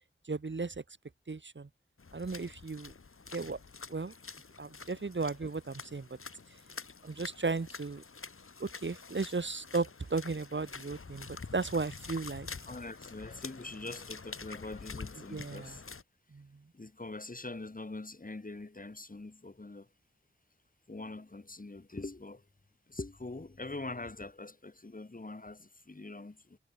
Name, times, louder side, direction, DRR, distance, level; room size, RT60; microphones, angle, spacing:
voice 1, 0.3-0.7 1.3-1.7 2.1-2.9 3.3-3.6 3.9-4.1 4.6-6.1 7.0-8.0 8.6-11.3 11.5-12.5 15.3-15.8 16.3-16.5, right 4 dB, 60° right, 2.0 m, -35 dB
sound 1, 2.0-16.0, left 4 dB, 85° left, 2.4 m, -47 dB
voice 2, 12.7-15.8 16.7-19.9 20.9-22.4 22.9-26.6, left 2 dB, 40° left, 2.6 m, -43 dB
wide cardioid pair, 60°, 21 cm